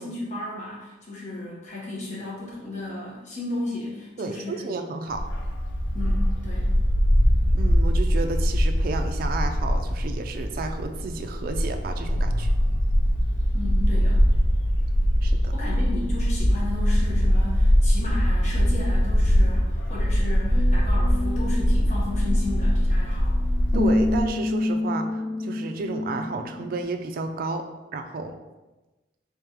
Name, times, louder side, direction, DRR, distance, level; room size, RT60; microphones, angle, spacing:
voice 1, 0.0-4.8 5.9-6.7 13.5-14.2 15.5-23.4, left 2 dB, 40° left, -6 dB, 1.1 m, -34 dB
voice 2, 4.2-5.2 7.5-12.5 15.2-15.5 23.7-27.7 27.9-28.3, right 3 dB, 50° right, 6 dB, 0.3 m, -32 dB
Bark, 5.1-24.2, equal, 75° left, 0.5 m, -22 dB
sound 1, 20.5-26.8, left 2 dB, 10° left, 0.9 m, -29 dB
3.5 x 3.2 x 2.9 m, 1.1 s
head